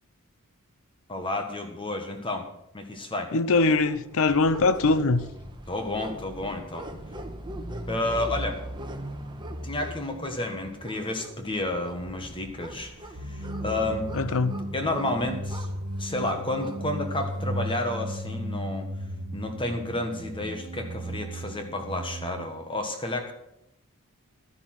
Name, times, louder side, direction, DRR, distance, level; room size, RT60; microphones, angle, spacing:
voice 1, 1.1-2.5 2.7-3.3 5.7-6.9 7.9-8.6 9.6-14.1 14.7-15.7 16.0-18.9 19.3-23.3, left 2 dB, 25° left, 1.5 m, -31 dB
voice 2, 3.3-5.3 14.1-14.6, left 3 dB, 65° left, 0.7 m, -22 dB
sound 1, 3.6-18.1, right 1 dB, 20° right, 1.3 m, -41 dB
sound 2, 13.1-22.5, equal, 75° right, 1.6 m, -35 dB
12.0 x 11.0 x 5.9 m
head